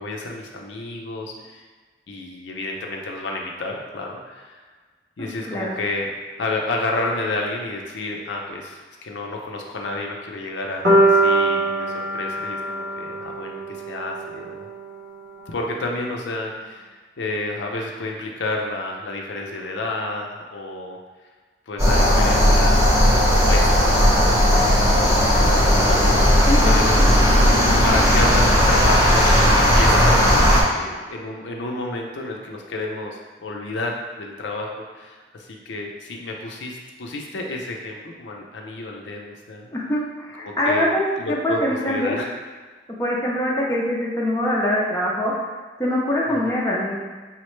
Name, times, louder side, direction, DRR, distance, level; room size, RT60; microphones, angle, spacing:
voice 1, 0.0-1.6 2.1-4.6 5.2-6.1 6.4-14.7 15.5-21.0 21.7-24.7 25.5-25.6 25.9-39.7 40.4-42.3 46.3-46.6, left 2 dB, 85° left, 0 dB, 0.5 m, -30 dB
voice 2, 5.2-5.7 26.5-27.0 39.7-42.2 43.0-45.3 45.8-47.0, left 1 dB, 15° left, -4 dB, 0.5 m, -23 dB
sound 1, 10.8-14.9, right 2 dB, 80° right, 0.9 m, -22 dB
sound 2, 21.8-30.6, equal, 15° right, 0.8 m, -16 dB
5.5 x 2.1 x 3.1 m, 1.4 s
head